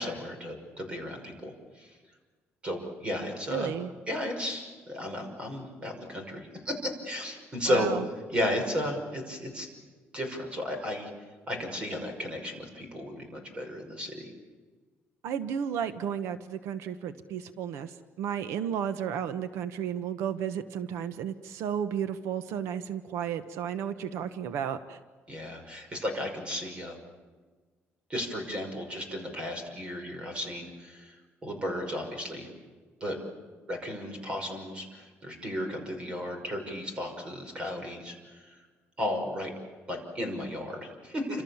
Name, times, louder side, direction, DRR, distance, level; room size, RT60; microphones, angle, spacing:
voice 1, 0.0-1.9 2.6-3.7 4.1-7.9 8.3-9.7 10.1-11.1 11.5-14.3 25.3-27.0 28.1-32.5 33.0-33.2 33.7-38.6 39.0-39.5 39.9-41.4, left 1 dB, 25° right, 5 dB, 5.7 m, -34 dB
voice 2, 3.5-3.9 7.7-8.0 15.2-25.0, right 8 dB, 90° right, 10 dB, 1.1 m, -33 dB
29.0 x 26.5 x 7.2 m, 1.4 s
cardioid pair, 170°, 5 cm